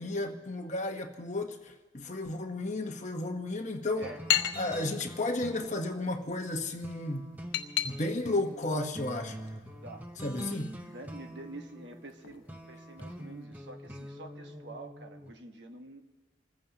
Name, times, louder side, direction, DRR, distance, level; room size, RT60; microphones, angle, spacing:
voice 1, 0.0-1.6 1.9-4.1 4.6-7.3 7.8-9.4 10.2-10.7, left 2 dB, 40° left, 4 dB, 1.1 m, -33 dB
sound 1, 3.5-13.4, left 11 dB, 85° left, 0.8 m, -38 dB
sound 2, 4.0-15.3, equal, 10° right, 0.9 m, -45 dB
voice 2, 10.8-16.0, right 2 dB, 65° right, 5 dB, 1.3 m, -47 dB
28.0 x 15.0 x 2.9 m, 1.2 s
head